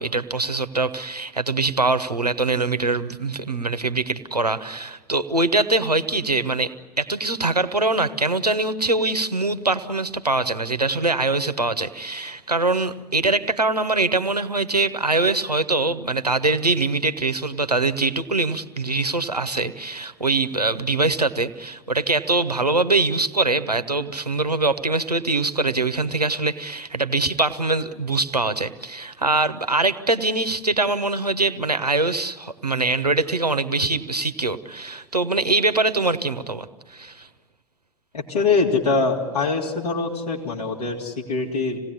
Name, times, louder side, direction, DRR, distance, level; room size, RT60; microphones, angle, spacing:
voice 1, 0.0-37.3, right 3 dB, 90° right, 10 dB, 1.0 m, -23 dB
voice 2, 38.1-41.8, left 4 dB, 75° left, -4 dB, 3.5 m, -23 dB
27.0 x 18.0 x 9.7 m, 1.4 s
figure-of-eight pair, 85°, 20 cm